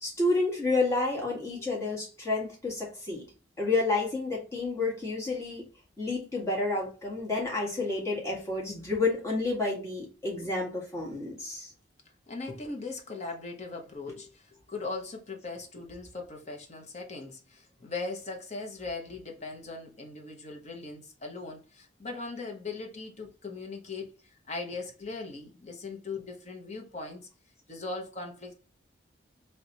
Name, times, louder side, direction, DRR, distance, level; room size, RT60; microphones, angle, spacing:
voice 1, 0.0-3.3 3.6-5.6 6.0-11.7, left 3 dB, 15° left, 1.6 m, -30 dB
voice 2, 12.3-27.3 27.7-28.5, left 3 dB, 35° left, 1.0 m, -39 dB
3.3 x 3.1 x 4.0 m
head